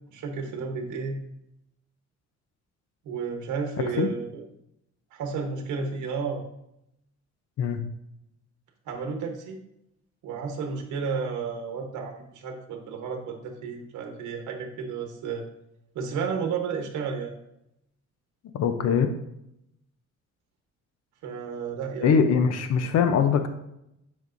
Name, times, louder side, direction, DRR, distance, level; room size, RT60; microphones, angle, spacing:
voice 1, 0.1-1.2 3.0-4.4 5.1-6.4 8.9-9.6 10.2-15.5 15.9-17.3 21.2-22.3 22.8-22.9, right 5 dB, 85° right, 3 dB, 1.2 m, -32 dB
voice 2, 18.5-19.1 22.0-23.5, left 6 dB, 60° left, 8 dB, 0.7 m, -22 dB
8.1 x 5.3 x 2.6 m, 0.79 s
cardioid pair, 130°, 29 cm